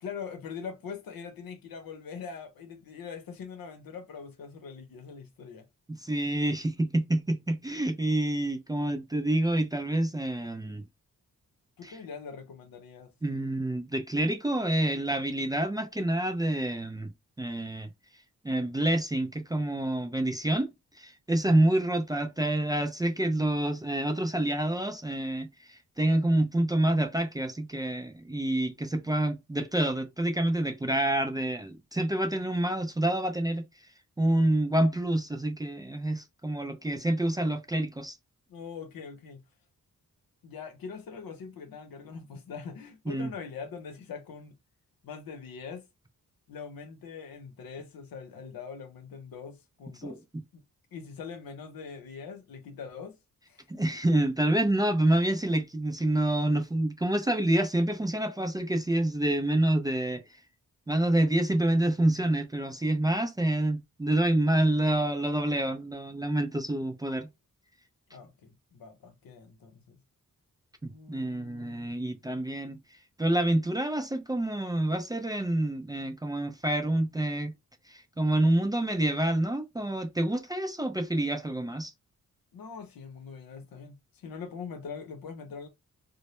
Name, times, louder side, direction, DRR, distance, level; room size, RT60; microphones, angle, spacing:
voice 1, 0.0-5.7 11.8-13.1 21.4-21.6 38.5-39.4 40.4-44.5 45.0-45.8 46.5-50.2 50.5-50.6 50.9-53.2 53.5-53.8 68.1-70.0 70.9-72.0 82.5-85.7, left 6 dB, 85° left, 0.7 m, -42 dB
voice 2, 5.9-10.8 11.8-12.0 13.2-17.1 17.4-17.9 18.4-20.7 21.0-33.7 34.2-38.2 43.1-43.3 50.0-50.2 53.7-60.2 60.9-67.3 70.8-72.8 73.2-77.5 77.9-81.9, right 1 dB, 10° right, 0.3 m, -27 dB
2.1 x 2.0 x 2.9 m
wide cardioid pair, 100°, 34 cm